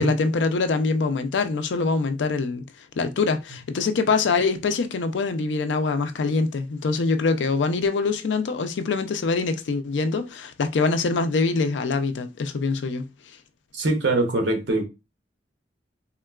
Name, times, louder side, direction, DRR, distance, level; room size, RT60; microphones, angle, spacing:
voice 1, 0.0-2.6 3.0-13.1, left 4 dB, 85° left, 0.4 m, -24 dB
voice 2, 13.7-14.8, right 2 dB, 85° right, 0.8 m, -23 dB
3.6 x 2.2 x 2.3 m
head